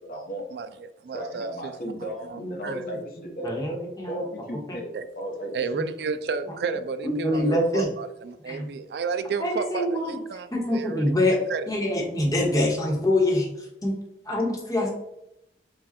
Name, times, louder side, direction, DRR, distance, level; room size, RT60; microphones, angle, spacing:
voice 1, 0.0-0.5 1.1-3.8 4.1-4.9 5.2-5.5, right 1 dB, 50° left, 1 dB, 1.0 m, -35 dB
voice 2, 0.5-1.7 2.3-2.8 4.9-5.0 5.5-11.0 11.5-11.7, right 5 dB, 70° right, 11 dB, 0.3 m, -32 dB
voice 3, 2.4-3.0 3.4-4.2 4.7-4.8 7.0-7.9 8.5-8.7 9.4-10.2 10.5-11.4 11.7-14.0 14.3-14.9, left 1 dB, 20° left, -2 dB, 1.0 m, -25 dB
4.9 x 2.3 x 4.2 m, 0.84 s
head